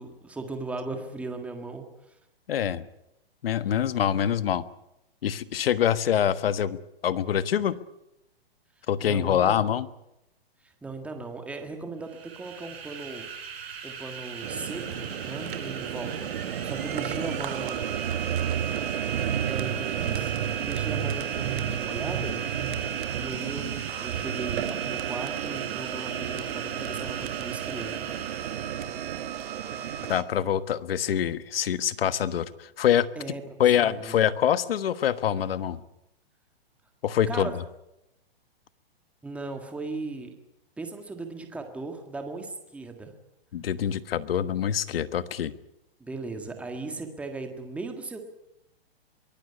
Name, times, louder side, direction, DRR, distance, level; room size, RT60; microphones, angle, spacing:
voice 1, 0.0-2.2 9.0-9.8 10.6-13.3 13.8-18.4 19.5-22.4 23.2-28.4 33.2-34.2 37.3-37.5 39.2-40.3 40.8-43.1 46.0-48.2, right 3 dB, 5° right, 5 dB, 1.7 m, -38 dB
voice 2, 2.5-2.8 3.4-4.6 5.2-6.8 7.0-7.8 8.9-9.9 30.1-33.1 33.6-35.8 37.0-37.5 43.5-45.5, left 9 dB, 70° left, 14 dB, 1.4 m, -25 dB
sound 1, 12.0-28.9, right 6 dB, 80° right, 6.9 m, -40 dB
sound 2, 14.4-30.2, right 9 dB, 55° right, 1.9 m, -31 dB
23.0 x 16.0 x 9.7 m, 0.87 s
hypercardioid pair, 160°, 31 cm